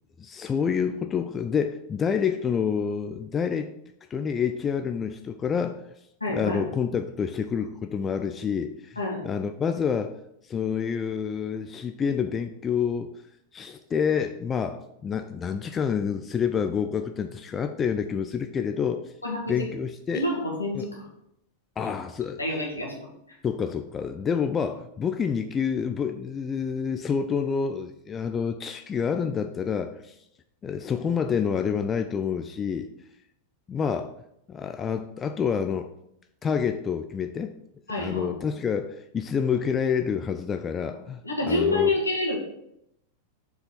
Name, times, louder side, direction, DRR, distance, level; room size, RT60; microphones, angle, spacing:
voice 1, 0.2-3.7 4.1-5.8 6.3-9.0 9.2-10.2 10.5-13.1 13.5-19.0 19.5-20.3 20.7-20.8 21.8-22.4 23.4-30.1 30.6-32.9 33.7-34.1 34.5-35.9 36.4-37.5 37.9-41.2 41.5-41.9, left 7 dB, 20° left, 7 dB, 0.4 m, -28 dB
voice 2, 6.2-6.6 9.0-9.2 19.2-19.7 20.1-21.1 22.4-23.1 37.9-38.3 41.2-42.4, left 2 dB, 80° left, -1 dB, 2.0 m, -27 dB
6.8 x 4.8 x 5.2 m, 0.78 s
figure-of-eight pair, 90°, 0 cm